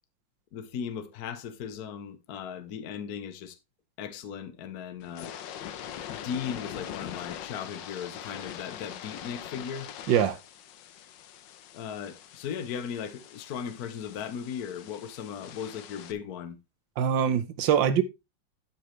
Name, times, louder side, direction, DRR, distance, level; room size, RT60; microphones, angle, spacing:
voice 1, 0.5-3.6 4.0-5.3 6.1-9.9 11.7-16.6, left 7 dB, 60° left, 1.3 m, -37 dB
sound 1, 5.0-16.1, left 10 dB, 80° left, 1.5 m, -43 dB
voice 2, 10.1-10.4 17.0-18.0, right 9 dB, 85° right, 1.6 m, -23 dB
12.0 x 7.2 x 3.3 m
omnidirectional pair, 2.0 m